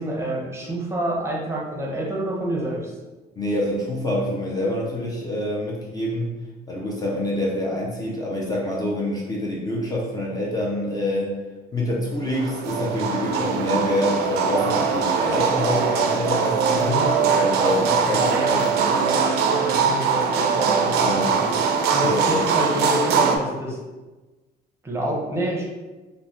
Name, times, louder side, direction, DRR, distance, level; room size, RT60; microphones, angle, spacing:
voice 1, 0.0-2.9 16.8-21.5 21.9-23.8 24.8-25.7, right 1 dB, 15° right, -3 dB, 0.7 m, -28 dB
voice 2, 3.4-6.4 6.7-11.3 11.7-17.0 17.4-18.7 21.0-21.3 22.0-22.4, left 1 dB, 20° left, -4 dB, 0.5 m, -26 dB
sound 1, 12.3-23.4, right 5 dB, 75° right, 0.4 m, -21 dB
2.5 x 2.1 x 3.3 m, 1.2 s
cardioid pair, 110°, 17 cm